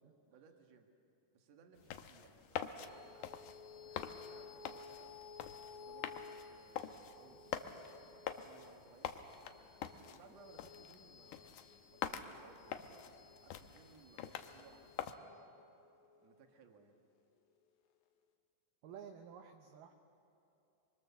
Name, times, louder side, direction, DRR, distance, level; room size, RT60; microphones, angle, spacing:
voice 1, 0.3-0.9 1.3-3.5 3.8-5.2 5.8-9.7 10.1-13.1 13.4-17.0, right 5 dB, 50° right, 3 dB, 2.3 m, -64 dB
sound 1, 1.8-15.1, left 9 dB, 90° left, 1.8 m, -46 dB
sound 2, 2.9-17.6, left 5 dB, 70° left, 2.9 m, -57 dB
voice 2, 18.8-19.9, right 7 dB, 70° right, 4 dB, 2.1 m, -52 dB
25.0 x 24.0 x 6.9 m, 2.9 s
omnidirectional pair, 4.8 m